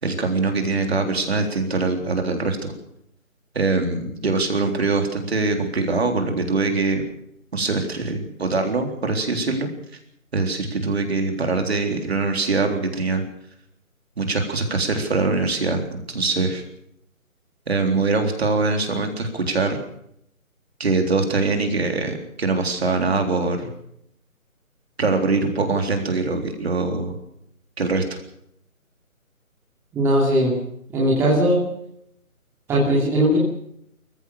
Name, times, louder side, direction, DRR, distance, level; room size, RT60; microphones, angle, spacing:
voice 1, 0.0-2.7 3.5-7.0 7.5-9.7 10.3-13.2 14.2-16.6 17.7-19.8 20.8-23.7 25.0-27.2 27.8-28.2, right 3 dB, 45° right, 5 dB, 3.8 m, -23 dB
voice 2, 29.9-30.5 30.9-31.6 32.7-33.4, equal, 5° right, -5 dB, 2.7 m, -18 dB
25.5 x 15.0 x 7.0 m, 0.73 s
figure-of-eight pair, 155°, 43 cm